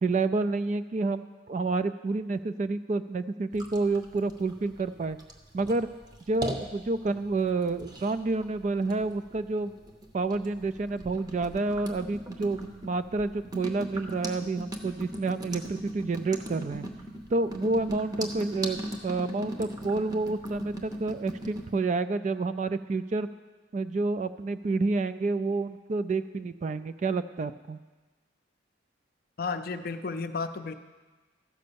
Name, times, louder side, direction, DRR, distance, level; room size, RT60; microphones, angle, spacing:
voice 1, 0.0-5.2 5.5-5.9 6.3-9.7 10.1-16.9 17.3-18.8 19.0-23.3 23.7-27.8, right 3 dB, 40° right, 12 dB, 0.3 m, -29 dB
sound 1, 3.6-21.7, right 1 dB, 20° right, 0.7 m, -39 dB
voice 2, 29.4-30.7, left 4 dB, 50° left, 9 dB, 0.5 m, -33 dB
13.5 x 5.3 x 6.9 m, 1.3 s
head